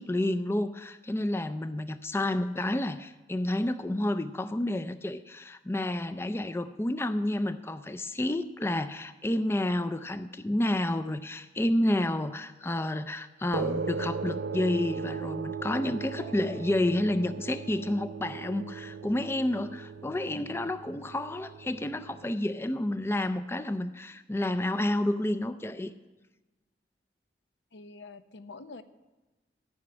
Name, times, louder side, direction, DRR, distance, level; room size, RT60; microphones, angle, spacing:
voice 1, 0.0-25.9, left 1 dB, 15° left, 12 dB, 0.4 m, -30 dB
sound 1, 13.5-22.3, right 5 dB, 70° right, 0.5 m, -37 dB
voice 2, 27.7-28.8, left 3 dB, 85° left, 11 dB, 0.7 m, -46 dB
14.5 x 6.0 x 9.6 m, 1.1 s
head